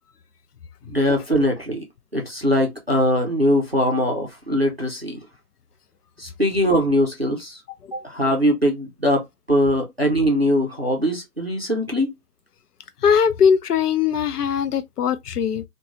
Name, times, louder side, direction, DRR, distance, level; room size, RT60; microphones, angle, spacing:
voice 1, 0.9-1.8 2.1-5.2 6.2-7.6 7.9-12.1, equal, 45° right, 0.5 m, -21 dB
voice 2, 13.0-15.6, left 7 dB, 85° left, 0.5 m, -20 dB
2.9 x 2.2 x 2.3 m
hypercardioid pair, 180°, 46 cm